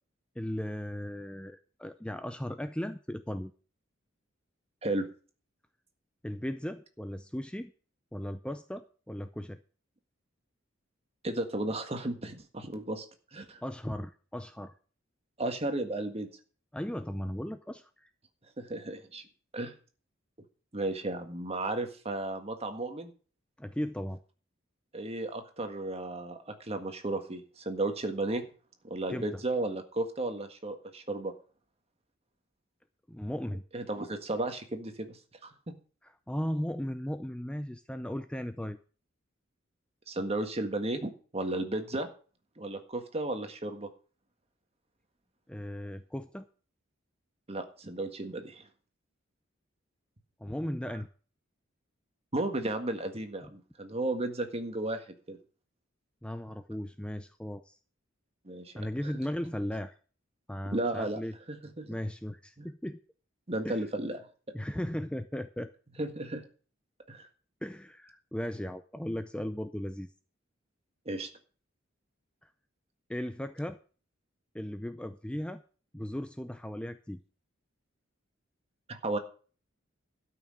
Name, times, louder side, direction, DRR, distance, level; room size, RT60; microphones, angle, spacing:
voice 1, 0.4-3.5 6.2-7.7 8.1-9.6 13.6-14.7 16.7-18.1 23.6-24.2 29.1-29.4 33.1-33.6 36.0-38.8 45.5-46.5 50.4-51.1 56.2-57.8 58.8-59.9 60.5-61.3 61.9-63.0 63.6-63.8 64.5-65.7 67.6-70.1 73.1-73.8 74.5-75.6 75.9-77.2, equal, 5° left, 10 dB, 0.5 m, -36 dB
voice 2, 11.2-13.1 13.3-13.6 15.4-16.3 18.6-19.2 19.5-19.7 20.7-23.1 24.9-28.4 28.9-31.3 33.7-35.2 35.4-35.5 40.1-42.1 42.6-43.9 47.5-48.6 52.3-55.4 58.4-59.1 60.7-61.2 61.5-61.9 62.6-62.7 63.5-64.2 66.0-66.4 67.1-67.3 71.0-71.3 78.9-79.2, right 2 dB, 30° right, 6 dB, 1.7 m, -34 dB
12.5 x 6.0 x 7.7 m, 0.40 s
head